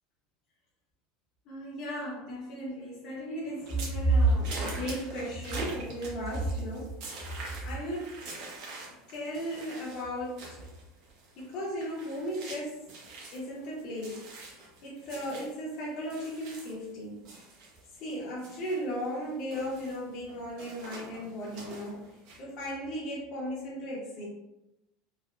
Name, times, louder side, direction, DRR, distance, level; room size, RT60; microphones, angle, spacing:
voice 1, 1.5-6.9 7.6-8.2 9.1-10.6 11.4-12.8 13.3-14.2 14.8-17.2 18.0-22.0 22.4-24.3, right 1 dB, 50° left, -6 dB, 0.8 m, -34 dB
sound 1, 3.6-17.0 17.2-22.4, right 2 dB, 60° right, 0.8 m, -45 dB
3.2 x 2.0 x 2.4 m, 0.91 s
supercardioid pair, 145°, 0 cm